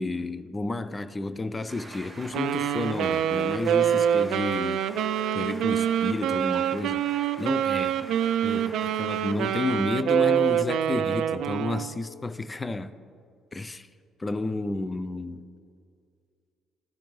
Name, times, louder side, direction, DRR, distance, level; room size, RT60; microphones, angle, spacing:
voice 1, 0.0-4.8 5.3-7.0 7.4-8.1 8.4-12.9 13.5-13.9 14.2-15.4, left 2 dB, 20° left, 13 dB, 0.4 m, -31 dB
sound 1, 1.7-9.8, right 2 dB, 15° right, 2.2 m, -46 dB
Wind instrument woodwind instrument, 2.3-11.9, right 9 dB, 70° right, 0.3 m, -25 dB
15.0 x 5.1 x 3.1 m, 2.2 s
cardioid pair, 110°, 0 cm